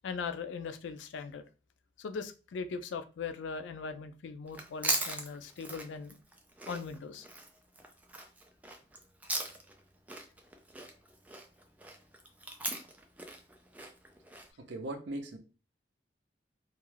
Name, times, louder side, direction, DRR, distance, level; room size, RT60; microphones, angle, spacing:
voice 1, 0.0-1.4 2.0-6.2 6.7-7.3, left 5 dB, 80° left, 0.3 m, -39 dB
Chewing mastication, 4.5-9.8 10.1-14.5, right 2 dB, 10° right, 0.3 m, -39 dB
voice 2, 14.6-15.4, right 1 dB, 70° right, 0.5 m, -39 dB
2.3 x 2.2 x 3.2 m
head